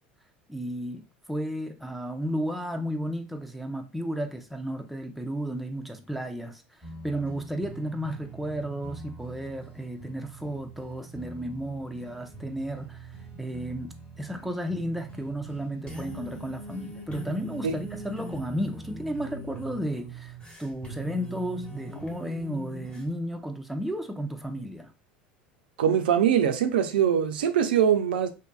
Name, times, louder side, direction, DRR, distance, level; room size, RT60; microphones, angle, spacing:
voice 1, 0.5-13.1 13.4-24.9, equal, ahead, 0.4 m, -33 dB
sound 1, 6.8-23.1, right 2 dB, 20° left, 1.1 m, -42 dB
voice 2, 25.8-28.3, right 9 dB, 80° right, 0.3 m, -22 dB
2.6 x 2.6 x 2.2 m
hypercardioid pair, 80°, 5 cm